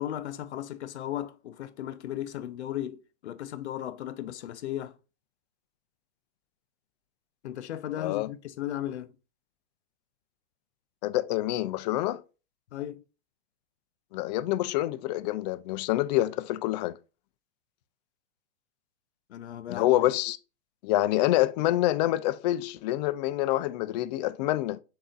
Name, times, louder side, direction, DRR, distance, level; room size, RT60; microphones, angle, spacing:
voice 1, 0.0-5.0 7.4-9.1 12.7-13.0 19.3-20.0, left 12 dB, 75° left, 0.7 m, -36 dB
voice 2, 8.0-8.3 11.0-12.2 14.1-17.0 19.7-20.4 20.8-24.8, left 15 dB, 40° left, 0.4 m, -27 dB
6.6 x 2.8 x 2.4 m
hypercardioid pair, 120°, 34 cm